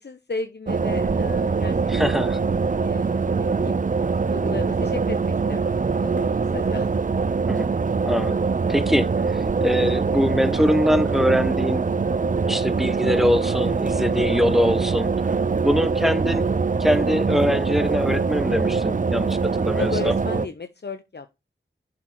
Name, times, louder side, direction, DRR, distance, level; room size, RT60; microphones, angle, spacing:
voice 1, 0.0-2.1 2.8-3.8 4.2-5.2 5.5-7.0 19.8-21.3, left 4 dB, 55° left, 0.8 m, -34 dB
sound 1, 0.7-20.5, right 4 dB, 40° right, 0.5 m, -23 dB
voice 2, 1.9-2.4 7.5-7.7 8.0-11.9 12.4-15.1 15.6-16.5 16.8-20.1, equal, ahead, 1.2 m, -23 dB
7.4 x 4.7 x 6.1 m
wide cardioid pair, 40°, 21 cm